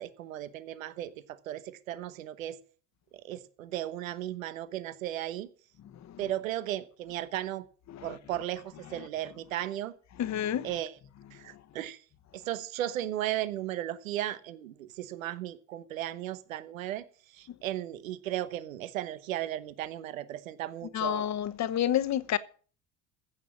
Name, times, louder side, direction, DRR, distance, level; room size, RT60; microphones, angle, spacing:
voice 1, 0.0-2.6 3.2-5.5 6.2-7.7 8.0-9.9 10.6-10.9 11.3-12.0 12.3-17.0 17.3-21.3, right 12 dB, 90° right, 1.0 m, -35 dB
voice 2, 10.2-10.7 20.9-22.4, left 10 dB, 45° left, 1.2 m, -29 dB
15.5 x 6.6 x 7.1 m
hypercardioid pair, 75°, 39 cm